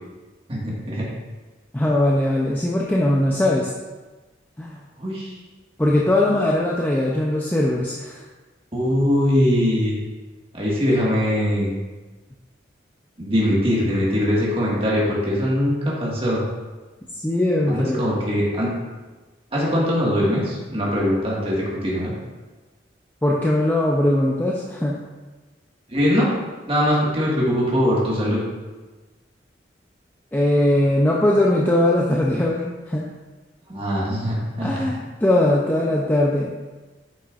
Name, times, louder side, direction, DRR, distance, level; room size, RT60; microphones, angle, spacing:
voice 1, 0.5-1.0 5.0-5.3 8.7-10.0 10.5-11.7 13.2-16.4 17.7-18.7 19.5-22.1 25.9-26.3 26.7-28.4 33.7-34.9, equal, 30° right, -6 dB, 1.7 m, -21 dB
voice 2, 1.7-3.7 4.6-4.8 5.8-8.2 17.2-18.0 23.2-25.0 30.3-33.0 34.6-36.5, left 1 dB, 10° left, -4 dB, 0.5 m, -20 dB
8.9 x 5.9 x 2.5 m, 1.2 s
head